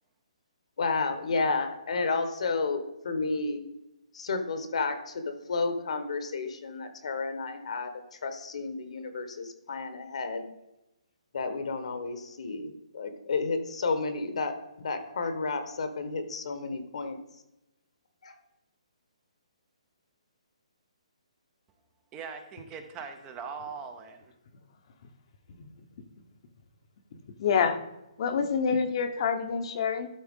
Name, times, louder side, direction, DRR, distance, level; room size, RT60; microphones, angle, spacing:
voice 1, 0.8-3.6 4.1-10.5 11.3-17.2 18.2-18.3, left 4 dB, 65° left, 8 dB, 1.2 m, -31 dB
voice 2, 22.1-24.3, right 5 dB, 20° right, 7 dB, 0.7 m, -41 dB
voice 3, 27.4-27.8 28.2-30.1, left 6 dB, 45° left, 8 dB, 0.9 m, -26 dB
12.0 x 4.2 x 3.7 m, 0.93 s
hypercardioid pair, 150°, 4 cm